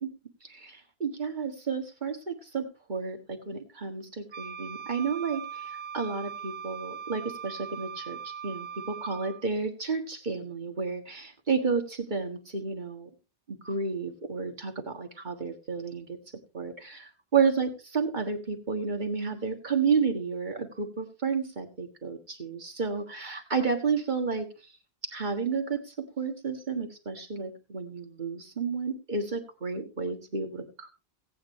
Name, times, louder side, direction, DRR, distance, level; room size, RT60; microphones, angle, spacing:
voice 1, 0.4-13.1 13.5-16.2 16.5-24.5 25.0-30.9, right 5 dB, 50° right, 5 dB, 1.7 m, -31 dB
Wind instrument woodwind instrument, 4.3-9.5, right 7 dB, 75° right, 1.4 m, -40 dB
17.0 x 8.9 x 3.1 m, 0.31 s
omnidirectional pair, 1.1 m